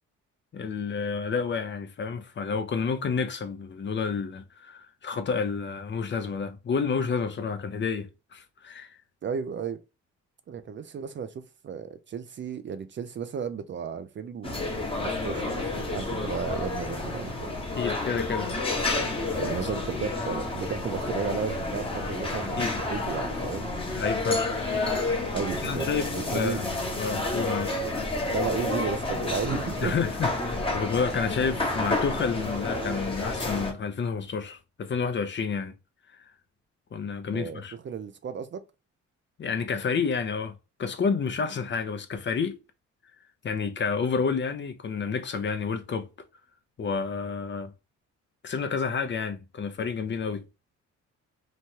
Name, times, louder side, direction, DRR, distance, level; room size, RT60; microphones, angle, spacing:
voice 1, 0.5-9.0 17.8-18.5 22.6-22.8 23.9-24.6 25.6-26.7 27.0-27.8 29.8-35.7 36.9-37.7 39.4-42.6 43.4-46.1 46.8-47.7 48.4-50.4, left 5 dB, 40° left, 0.6 m, -30 dB
voice 2, 9.2-9.8 10.5-17.6 19.4-23.7 25.3-26.6 28.3-29.9 37.3-38.6, right 6 dB, 40° right, 0.4 m, -34 dB
sound 1, 14.4-33.7, left 2 dB, 20° left, 1.0 m, -30 dB
3.1 x 2.2 x 2.7 m
cardioid pair, 90°, 30 cm